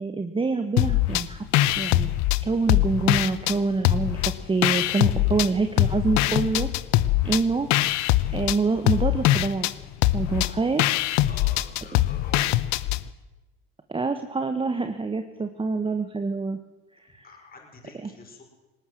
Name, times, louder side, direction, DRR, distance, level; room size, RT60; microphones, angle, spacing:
voice 1, 0.0-1.5 1.8-2.1 2.4-6.7 7.2-7.7 8.3-9.7 10.1-10.8 13.9-16.6 17.1-17.3 18.0-18.1, right 4 dB, 15° right, 8 dB, 1.4 m, -26 dB
sound 1, 0.8-1.3 1.5-3.6 3.8-5.5 5.8-13.0, left 15 dB, 65° left, 1.0 m, -22 dB
voice 2, 11.2-12.7 17.2-18.4, left 4 dB, 30° left, 2 dB, 5.8 m, -48 dB
19.0 x 18.5 x 7.8 m, 1.1 s
supercardioid pair, 100°, 30 cm